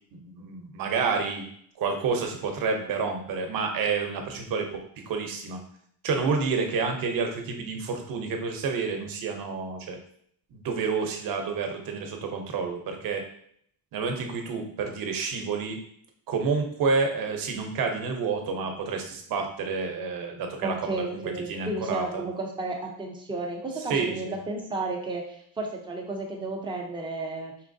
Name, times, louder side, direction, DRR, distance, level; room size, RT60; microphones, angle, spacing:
voice 1, 0.2-1.5 1.8-4.7 5.1-5.6 6.0-10.0 10.5-13.2 13.9-15.8 16.3-21.0 21.5-22.2 23.9-24.4, right 5 dB, 45° right, 4 dB, 0.7 m, -29 dB
voice 2, 20.6-27.5, right 2 dB, 10° right, 0 dB, 0.4 m, -33 dB
4.5 x 3.1 x 2.6 m, 0.65 s
cardioid pair, 165°, 48 cm